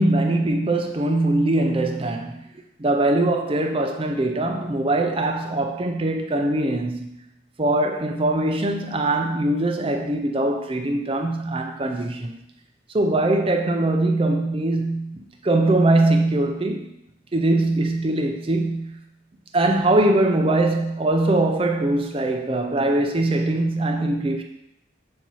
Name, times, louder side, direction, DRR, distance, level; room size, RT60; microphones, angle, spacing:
voice 1, 0.0-2.4 2.8-7.1 7.6-12.4 12.9-16.9 17.3-19.0 19.5-24.4, right 2 dB, 30° right, 4 dB, 0.5 m, -22 dB
7.3 x 2.8 x 5.5 m, 0.80 s
head